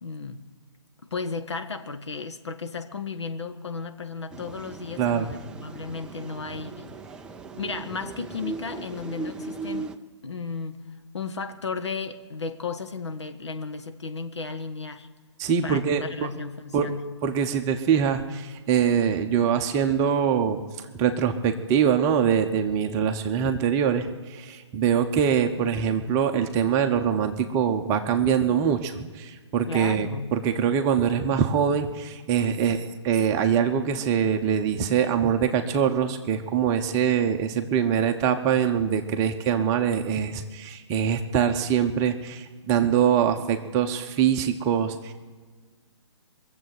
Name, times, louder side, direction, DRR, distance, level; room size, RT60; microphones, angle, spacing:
voice 1, 0.0-0.4 1.1-6.9 7.5-9.9 10.2-10.8 11.1-15.1 15.6-17.0 29.7-30.3, left 4 dB, 70° left, 7 dB, 1.4 m, -34 dB
sound 1, 4.3-10.0, right 4 dB, 5° right, 0.4 m, -38 dB
voice 2, 5.0-5.3 15.4-16.3 16.7-16.9 17.2-45.1, right 8 dB, 20° right, 6 dB, 1.0 m, -24 dB
22.5 x 7.8 x 7.9 m, 1.4 s
figure-of-eight pair, 135°, 15 cm